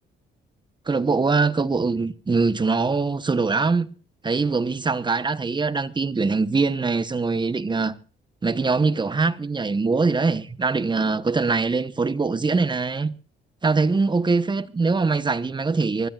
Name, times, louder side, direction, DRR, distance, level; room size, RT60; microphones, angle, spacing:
voice 1, 0.9-3.9 4.2-7.9 8.4-13.1 13.6-16.1, right 4 dB, 25° right, 1.1 m, -22 dB
25.5 x 13.5 x 2.5 m
cardioid pair, 90°, 20 cm